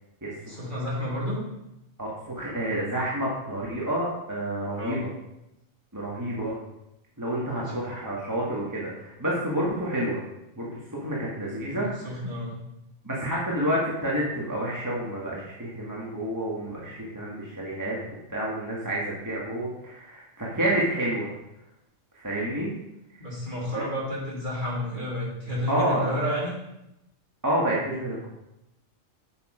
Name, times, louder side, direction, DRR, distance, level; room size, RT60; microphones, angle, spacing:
voice 1, 0.5-1.4 4.8-5.0 7.5-7.8 11.6-12.6 23.2-26.6, equal, 35° right, -6 dB, 3.2 m, -31 dB
voice 2, 2.0-5.0 5.9-6.6 7.2-10.2 10.6-12.2 13.0-18.0 18.3-21.3 22.1-22.7 23.1-23.2 23.7-23.8 25.7-26.2 27.4-28.3, right 1 dB, 15° right, -5 dB, 1.8 m, -29 dB
8.5 x 7.0 x 5.0 m, 0.87 s
omnidirectional pair, 1.4 m